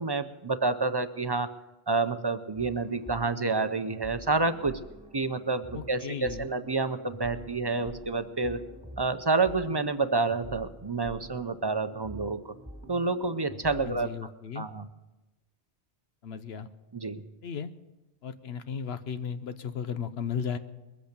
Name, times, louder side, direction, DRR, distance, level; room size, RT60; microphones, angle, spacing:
voice 1, 0.0-1.5 1.9-4.8 5.1-8.6 9.0-12.5 12.9-14.1 14.6-14.9 16.9-17.2, right 3 dB, 30° right, 11 dB, 0.5 m, -29 dB
sound 1, 2.6-14.1, equal, 5° right, 2.4 m, -47 dB
voice 2, 5.7-6.5 13.9-14.7 16.2-16.7 17.4-17.7 18.2-20.6, left 7 dB, 75° left, 11 dB, 1.1 m, -35 dB
21.5 x 8.2 x 6.7 m, 1.1 s
omnidirectional pair, 1.1 m